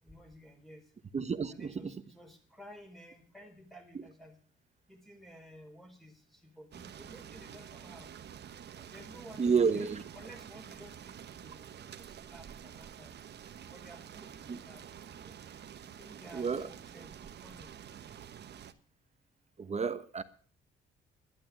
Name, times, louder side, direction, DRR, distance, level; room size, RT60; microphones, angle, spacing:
voice 1, 0.0-0.8 1.5-4.4 4.9-8.1 8.8-13.1 13.7-15.3 16.0-17.7, equal, ahead, 4.5 m, -54 dB
voice 2, 1.1-1.9 9.4-10.0 14.5-14.6 16.3-16.7 19.6-20.2, right 5 dB, 35° right, 1.2 m, -30 dB
sound 1, 6.7-18.7, right 9 dB, 60° right, 1.2 m, -49 dB
11.5 x 11.5 x 6.1 m
cardioid pair, 90°, 20 cm